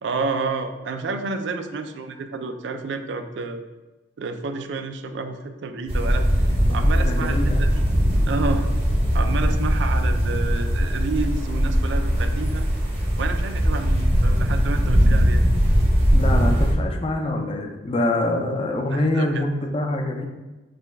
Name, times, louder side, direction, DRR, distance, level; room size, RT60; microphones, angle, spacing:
voice 1, 0.0-3.6 4.2-6.3 6.7-7.8 8.3-8.7 9.1-12.6 13.2-15.4 18.9-19.4, right 4 dB, 65° right, 7 dB, 0.3 m, -30 dB
sound 1, 5.9-16.7, equal, 30° right, 0.7 m, -20 dB
voice 2, 6.6-7.6 16.1-20.3, left 1 dB, 30° left, 3 dB, 0.4 m, -25 dB
5.1 x 2.2 x 3.3 m, 1.1 s
head